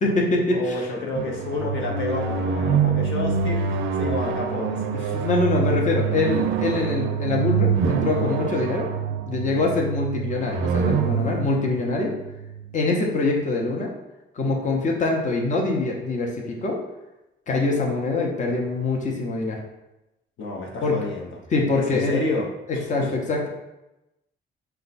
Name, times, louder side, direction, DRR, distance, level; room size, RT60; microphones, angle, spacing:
voice 1, 0.0-0.8 5.1-8.9 9.3-12.1 12.7-13.9 14.3-16.8 17.5-19.6 20.8-21.1 21.5-22.2 22.7-23.5, left 3 dB, 40° left, 0 dB, 0.7 m, -24 dB
voice 2, 0.5-5.3 9.6-9.7 20.4-21.3 21.7-22.5 23.0-23.1, left 2 dB, 70° left, 0 dB, 0.8 m, -30 dB
sound 1, 1.2-12.8, right 6 dB, 90° right, 0.4 m, -25 dB
4.4 x 2.3 x 4.0 m, 0.97 s
cardioid pair, 90°, 20 cm